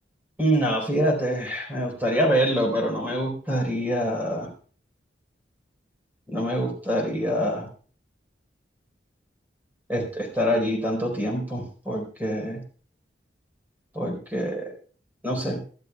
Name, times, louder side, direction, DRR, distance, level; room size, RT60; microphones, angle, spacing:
voice 1, 0.4-4.5 6.3-7.7 9.9-12.6 13.9-14.7 15.2-15.6, equal, 10° right, 1 dB, 4.3 m, -25 dB
25.0 x 12.0 x 2.4 m, 0.41 s
head